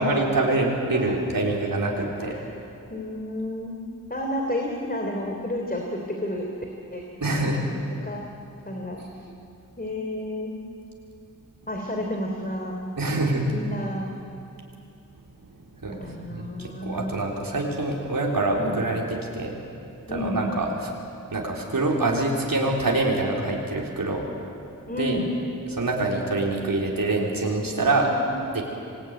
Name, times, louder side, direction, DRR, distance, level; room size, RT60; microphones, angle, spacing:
voice 1, 0.0-2.4 7.2-7.6 13.0-13.5 15.5-19.6 20.1-20.9 21.3-24.6 24.9-25.2 25.7-28.1 28.5-28.6, right 2 dB, 80° right, -2 dB, 3.9 m, -25 dB
voice 2, 2.2-2.5 2.9-3.8 4.1-6.5 6.9-7.0 7.3-7.5 8.0-8.2 8.6-9.0 9.8-10.6 11.7-12.9 13.5-14.1 15.9-17.3 18.6-18.8 20.1-20.6 24.9-25.3 28.0-28.6, left 1 dB, 25° left, 1 dB, 3.2 m, -31 dB
26.5 x 20.5 x 9.5 m, 2.6 s
wide cardioid pair, 65°, 34 cm